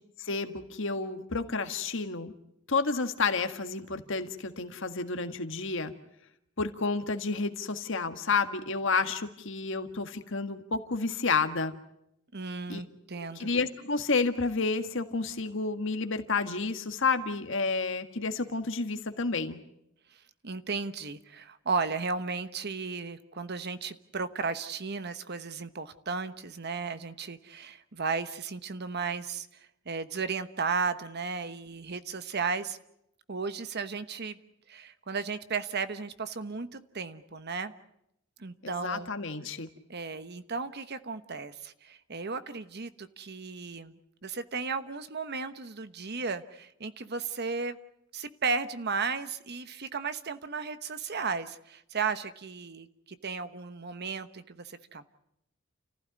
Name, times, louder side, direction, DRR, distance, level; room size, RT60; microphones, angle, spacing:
voice 1, 0.2-2.3 2.7-5.9 6.6-11.7 12.7-12.8 13.4-19.6 38.6-39.7, left 4 dB, 65° left, 8 dB, 1.7 m, -30 dB
voice 2, 12.3-13.5 20.4-29.5 29.8-32.8 33.3-34.4 34.7-37.7 38.4-39.1 39.9-44.0 44.2-47.8 48.1-55.0, right 5 dB, 55° right, 11 dB, 1.1 m, -34 dB
29.5 x 15.5 x 9.6 m, 0.79 s
head